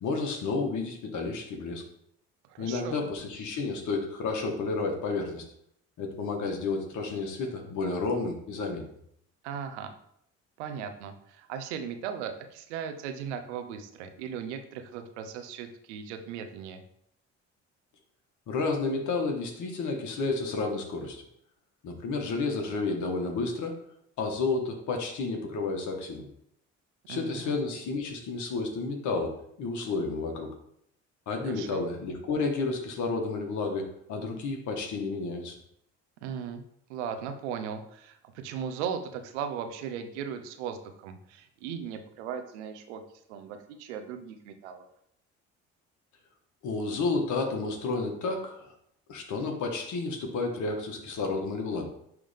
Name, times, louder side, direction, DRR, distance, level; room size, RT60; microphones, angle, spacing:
voice 1, 0.0-1.8 2.6-5.4 6.0-8.8 18.5-21.2 21.8-23.8 24.2-26.3 27.1-30.5 31.3-35.5 46.6-48.7 49.1-51.9, left 3 dB, 60° left, 3 dB, 1.8 m, -31 dB
voice 2, 2.5-3.1 9.4-10.0 10.6-16.8 27.1-27.6 31.4-31.8 36.2-36.6 36.9-43.0 43.3-44.8, right 7 dB, 85° right, 7 dB, 0.9 m, -37 dB
10.5 x 3.6 x 3.5 m, 0.72 s
hypercardioid pair, 60°, 34 cm